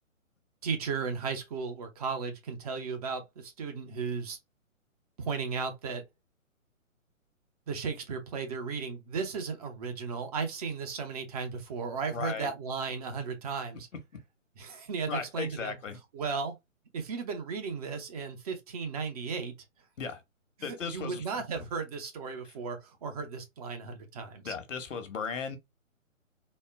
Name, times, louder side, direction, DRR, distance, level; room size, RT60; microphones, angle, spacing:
voice 1, 0.6-4.4 5.2-6.0 7.7-13.9 14.6-15.8 16.1-16.5 16.9-19.5 20.6-24.5, right 5 dB, 30° right, 0.9 m, -35 dB
voice 2, 12.1-12.5 15.1-16.0 20.0-20.2 20.6-21.2 24.4-25.6, left 5 dB, 60° left, 1.3 m, -36 dB
4.2 x 2.3 x 3.3 m
figure-of-eight pair, 135°, 41 cm